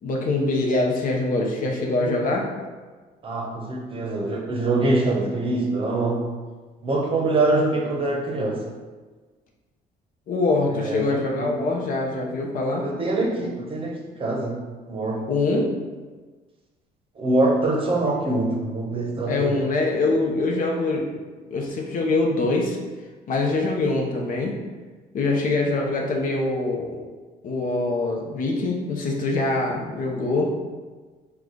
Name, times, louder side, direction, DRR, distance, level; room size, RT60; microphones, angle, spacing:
voice 1, 0.0-2.5 10.3-12.9 15.2-15.7 19.3-21.1 21.5-22.8 23.3-24.6 25.1-27.0 27.4-30.5, left 2 dB, 55° left, 0 dB, 0.8 m, -24 dB
voice 2, 3.2-6.2 6.8-8.6 10.7-11.5 12.8-14.6 14.9-15.2 17.2-19.5, right 2 dB, 30° right, 0 dB, 0.8 m, -24 dB
4.8 x 2.3 x 3.8 m, 1.4 s
cardioid pair, 110°, 17 cm